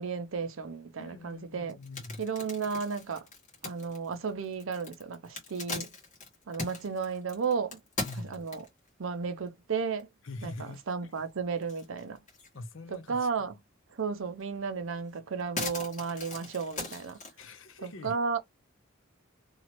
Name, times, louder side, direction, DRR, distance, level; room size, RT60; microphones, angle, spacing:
voice 1, 0.0-1.8 2.2-3.3 3.6-5.9 6.5-7.8 8.2-8.7 9.0-10.1 10.4-10.5 10.9-12.2 13.1-13.6 13.9-17.2 17.8-18.4, right 5 dB, 75° right, 0.6 m, -33 dB
voice 2, 1.0-2.2 8.0-8.4 10.2-11.1 12.5-13.5 17.4-18.2, left 2 dB, 70° left, 0.7 m, -44 dB
sound 1, 1.7-8.9 9.5-9.6 10.0-10.1 10.4-11.2 11.6-12.6 12.9-13.0 14.4-14.5 14.9-17.4, left 3 dB, 35° left, 1.4 m, -40 dB
3.0 x 2.4 x 3.0 m
head